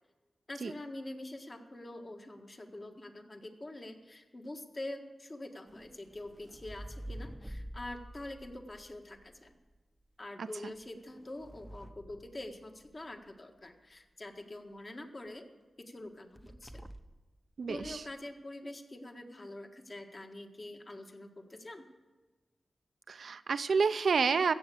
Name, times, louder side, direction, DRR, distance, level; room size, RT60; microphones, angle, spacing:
voice 1, 0.5-9.5 10.2-15.5 15.8-16.8 17.6-21.9, left 1 dB, 40° left, 4 dB, 1.6 m, -45 dB
sound 1, 5.7-9.8 10.7-13.1 16.4-17.2 17.6-18.1, equal, 5° right, 0.8 m, -48 dB
voice 2, 10.4-10.7 17.6-18.0 23.1-24.5, right 5 dB, 75° right, 13 dB, 0.6 m, -29 dB
15.5 x 7.2 x 8.5 m, 1.3 s
cardioid pair, 55°, 0 cm